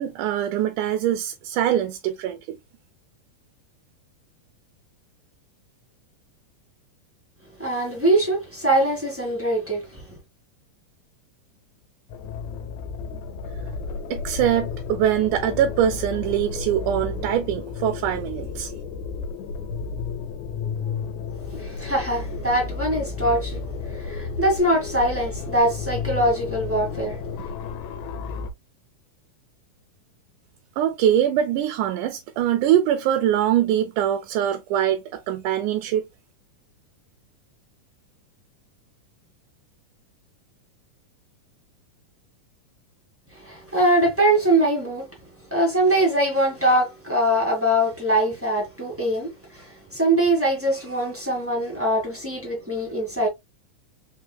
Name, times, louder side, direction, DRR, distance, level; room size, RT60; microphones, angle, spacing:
voice 1, 0.0-2.6 14.1-18.7 30.8-36.0, right 10 dB, 80° right, 2.0 m, -23 dB
voice 2, 7.6-10.0 21.5-27.5 43.3-45.1 45.5-53.3, right 1 dB, 10° right, 0.7 m, -23 dB
sound 1, 12.1-28.5, left 5 dB, 70° left, 1.9 m, -32 dB
4.7 x 4.0 x 2.3 m
omnidirectional pair, 3.8 m